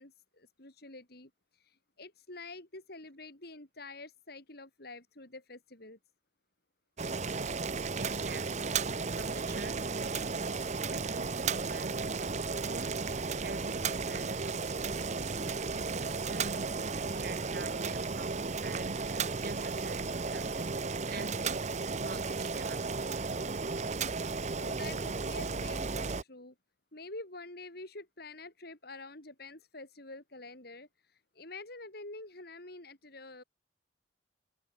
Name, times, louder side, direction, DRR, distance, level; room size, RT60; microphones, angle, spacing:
voice 1, 0.0-6.0 24.5-26.5 26.9-33.4, left 2 dB, 60° left, 4.9 m, -47 dB
Boiling, 7.0-26.2, right 4 dB, 40° right, 1.0 m, -34 dB
voice 2, 7.9-21.7 21.9-23.1, right 3 dB, 55° right, 2.5 m, -46 dB
head